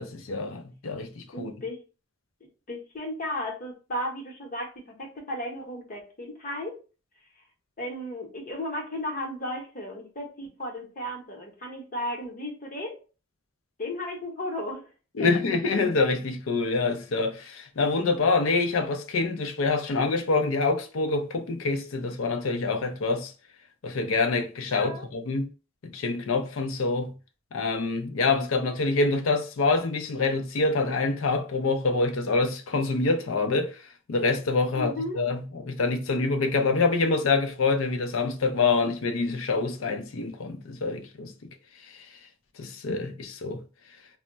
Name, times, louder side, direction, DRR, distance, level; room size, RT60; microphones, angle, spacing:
voice 1, 0.0-1.5 15.2-23.3 23.8-25.5 25.8-27.1 27.5-33.8 34.1-41.3 41.9-42.1 42.6-43.6, left 3 dB, 80° left, 0.5 m, -26 dB
voice 2, 1.3-1.8 2.7-6.8 7.8-13.0 13.8-14.9 15.2-15.3 24.7-25.1 34.8-35.2, left 1 dB, 40° left, 0.8 m, -34 dB
2.2 x 2.1 x 3.8 m
head